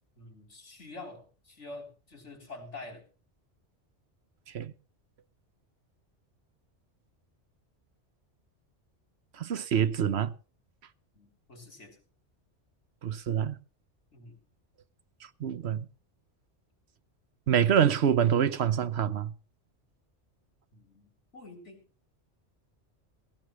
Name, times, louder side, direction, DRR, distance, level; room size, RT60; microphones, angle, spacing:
voice 1, 0.2-3.0 11.1-12.0 14.1-14.4 20.7-21.9, left 2 dB, 85° left, 4.0 m, -47 dB
voice 2, 9.3-10.3 13.0-13.6 15.2-15.9 17.5-19.3, right 8 dB, 70° right, 1.1 m, -26 dB
16.5 x 16.5 x 3.1 m
omnidirectional pair, 1.2 m